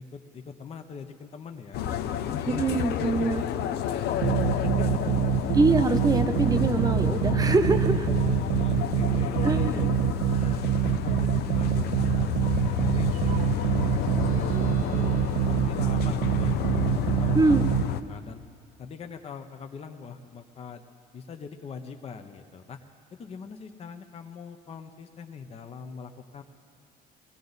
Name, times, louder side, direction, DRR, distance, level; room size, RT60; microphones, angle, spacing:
voice 1, 0.0-3.3 3.8-5.5 8.1-9.9 10.3-15.1 15.5-17.7 18.1-18.4 18.8-20.8 21.1-22.8 23.1-26.4, left 5 dB, 35° left, 5 dB, 0.8 m, -42 dB
sound 1, 1.7-18.0, left 11 dB, 75° left, 0.7 m, -30 dB
voice 2, 2.5-3.4 5.5-8.1 9.4-9.9 17.3-17.6, right 3 dB, 20° right, 8 dB, 0.8 m, -24 dB
sound 2, 4.2-17.8, right 12 dB, 70° right, 0.5 m, -26 dB
sound 3, 13.0-17.0, right 3 dB, 50° right, 1.1 m, -46 dB
20.5 x 16.0 x 4.0 m, 2.2 s
cardioid pair, 110°, 17 cm